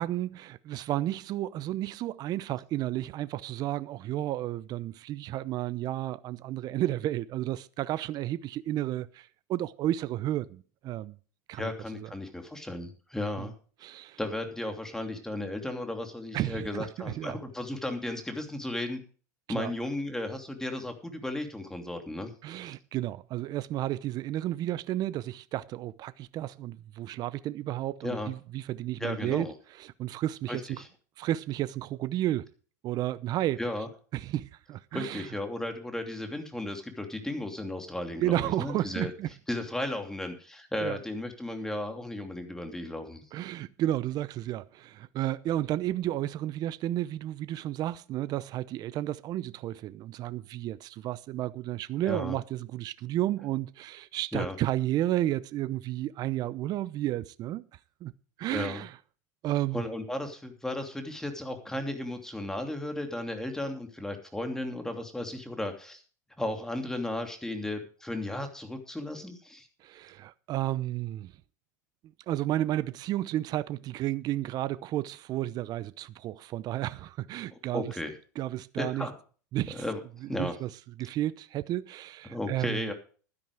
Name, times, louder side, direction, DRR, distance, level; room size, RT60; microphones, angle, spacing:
voice 1, 0.0-11.2 11.5-12.1 13.4-13.5 13.8-14.2 16.3-17.4 19.5-19.7 22.4-30.8 31.2-32.5 32.8-33.6 34.1-35.4 38.2-39.3 40.8-41.0 43.3-57.7 58.0-58.1 58.4-59.0 59.4-59.8 69.8-71.3 72.3-77.9 78.4-79.1 79.5-79.8 80.2-80.7 81.0-82.9, right 14 dB, 45° right, 0.8 m, -32 dB
voice 2, 11.5-13.5 14.2-19.0 19.5-22.3 28.0-28.3 29.0-29.5 30.5-30.9 33.6-33.9 34.9-39.1 39.5-43.2 52.0-52.4 54.3-54.6 58.5-58.8 59.7-66.0 66.4-69.7 77.7-78.1 78.8-79.1 79.7-80.5 82.3-82.9, left 1 dB, 5° left, 2.9 m, -35 dB
12.5 x 10.5 x 4.9 m
hypercardioid pair, 105°, 10 cm